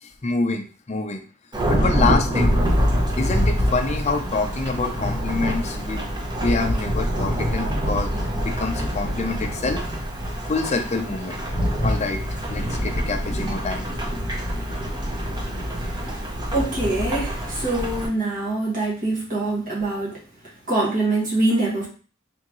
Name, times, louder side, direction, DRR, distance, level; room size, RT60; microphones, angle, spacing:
voice 1, 0.0-1.2 1.7-2.6 3.2-6.0 6.4-8.1 8.4-9.9 10.4-11.4 11.8-12.2 12.5-13.9, left 3 dB, 35° left, 4 dB, 0.6 m, -26 dB
Thunderstorm / Rain, 1.5-18.1, equal, 20° right, 0.8 m, -25 dB
voice 2, 16.5-20.2 20.7-21.9, right 2 dB, 40° right, -5 dB, 1.7 m, -24 dB
3.7 x 3.5 x 3.0 m, 0.38 s
head